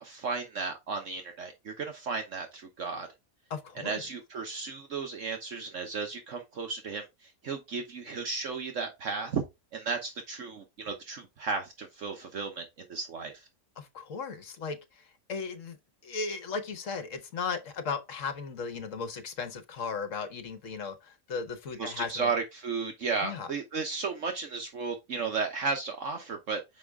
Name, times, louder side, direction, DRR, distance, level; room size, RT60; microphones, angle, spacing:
voice 1, 0.0-3.1 3.8-9.4 9.7-13.4 21.8-26.8, right 4 dB, 60° right, 1.2 m, -34 dB
voice 2, 3.5-4.0 13.8-15.8 16.0-22.3 23.2-23.5, left 5 dB, 60° left, 1.3 m, -36 dB
6.2 x 4.9 x 3.4 m
omnidirectional pair, 1.6 m